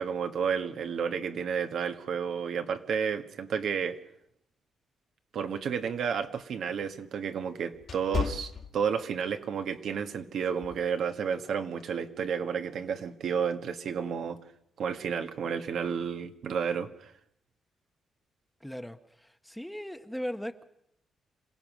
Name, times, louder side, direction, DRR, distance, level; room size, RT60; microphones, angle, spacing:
voice 1, 0.0-4.0 5.3-14.4 14.8-17.1, right 7 dB, 70° right, 7 dB, 1.5 m, -31 dB
sound 1, 5.6-9.3 9.8-10.0 10.6-10.9, left 6 dB, 55° left, 2.1 m, -36 dB
voice 2, 18.6-19.0 19.4-20.6, equal, 5° left, 9 dB, 1.0 m, -37 dB
27.0 x 16.5 x 6.2 m, 0.77 s
cardioid pair, 115°, 0 cm